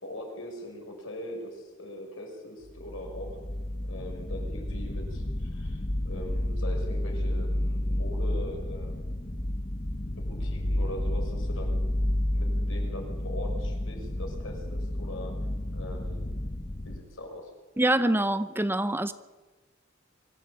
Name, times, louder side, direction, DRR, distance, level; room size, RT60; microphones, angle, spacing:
voice 1, 0.0-3.4 3.9-9.1 10.1-11.9 12.3-15.3 15.7-16.3 16.8-17.5, left 1 dB, 70° left, 2 dB, 6.0 m, -41 dB
sound 1, 2.7-17.0, left 1 dB, 30° left, 1.3 m, -31 dB
voice 2, 17.8-19.1, right 1 dB, 10° right, 12 dB, 0.7 m, -25 dB
24.5 x 15.0 x 8.7 m, 1.3 s
head